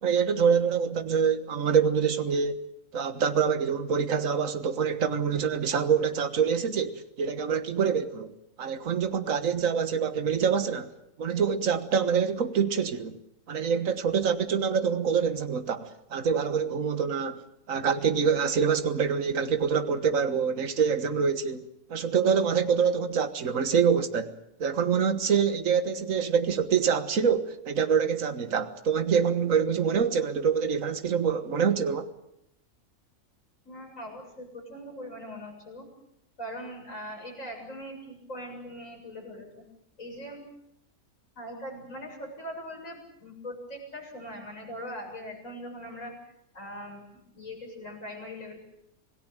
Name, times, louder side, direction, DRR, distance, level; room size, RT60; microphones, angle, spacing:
voice 1, 0.0-2.6 2.9-8.3 8.6-10.9 11.2-13.2 13.5-17.4 17.7-24.3 24.6-32.1, right 6 dB, 60° right, 1.8 m, -25 dB
voice 2, 33.6-35.9 36.4-39.5 40.0-40.4 41.4-46.1 46.5-47.0 47.3-48.6, equal, 55° left, 8.2 m, -41 dB
27.0 x 17.5 x 9.0 m
omnidirectional pair, 1.6 m